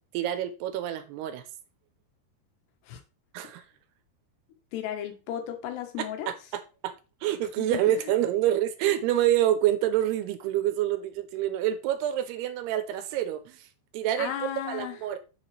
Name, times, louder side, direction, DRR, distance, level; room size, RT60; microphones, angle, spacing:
voice 1, 0.1-1.4 3.3-3.6 6.0-6.9 7.2-13.7 13.9-15.2, right 12 dB, 80° right, 2.7 m, -27 dB
voice 2, 4.7-6.3 7.6-7.8 14.2-15.0, left 10 dB, 80° left, 3.3 m, -34 dB
7.5 x 7.5 x 3.3 m
omnidirectional pair, 4.8 m